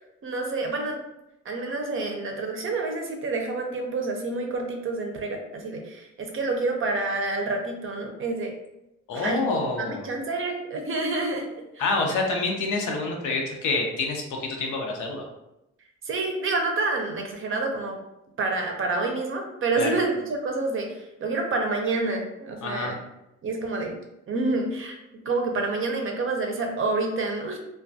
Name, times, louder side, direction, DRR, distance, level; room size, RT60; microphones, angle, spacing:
voice 1, 0.2-1.0 1.4-8.5 9.1-9.4 9.8-11.5 16.0-18.0 18.4-22.9 23.4-24.0 24.3-25.0 25.2-27.6, right 3 dB, 45° right, 3 dB, 0.6 m, -28 dB
voice 2, 9.1-10.1 11.8-15.3 19.8-19.9 22.6-22.9, left 3 dB, 80° left, 1 dB, 0.6 m, -27 dB
2.3 x 2.2 x 2.6 m, 0.88 s
cardioid pair, 90°, 30 cm